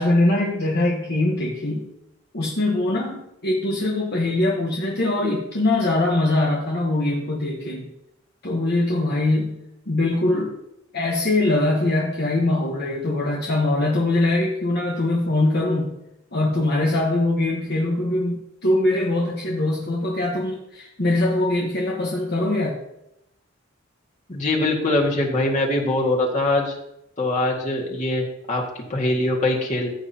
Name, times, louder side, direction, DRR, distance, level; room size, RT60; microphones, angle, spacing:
voice 1, 0.0-1.9 2.3-7.9 8.4-9.6 9.9-10.5 10.9-16.0 16.3-22.8, left 2 dB, 55° left, -2 dB, 1.3 m, -22 dB
voice 2, 24.3-26.8 27.2-29.9, left 2 dB, 40° left, -1 dB, 2.0 m, -23 dB
15.0 x 7.3 x 2.9 m, 0.84 s
head